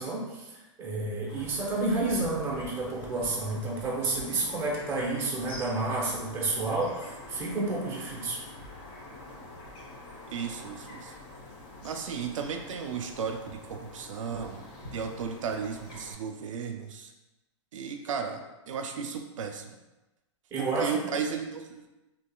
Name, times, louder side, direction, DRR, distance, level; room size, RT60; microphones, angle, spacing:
voice 1, 0.0-8.4 20.5-20.9, right 2 dB, 15° right, -4 dB, 0.7 m, -30 dB
sound 1, 1.3-16.1, left 2 dB, 40° left, 0.9 m, -46 dB
voice 2, 10.3-11.1 11.8-17.1 17.7-18.4 18.7-19.7 20.6-21.9, right 6 dB, 85° right, 5 dB, 0.4 m, -35 dB
3.6 x 2.8 x 2.3 m, 1.0 s
hypercardioid pair, 150°, 16 cm